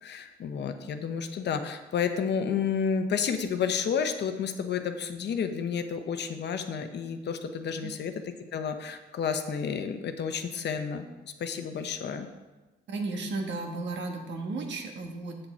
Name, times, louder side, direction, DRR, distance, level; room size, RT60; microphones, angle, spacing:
voice 1, 0.0-8.1 8.5-12.3, left 6 dB, 60° left, 8 dB, 0.9 m, -31 dB
voice 2, 12.9-15.5, right 3 dB, 65° right, 3 dB, 1.4 m, -34 dB
7.7 x 7.1 x 4.3 m, 1.1 s
cardioid pair, 90°, 20 cm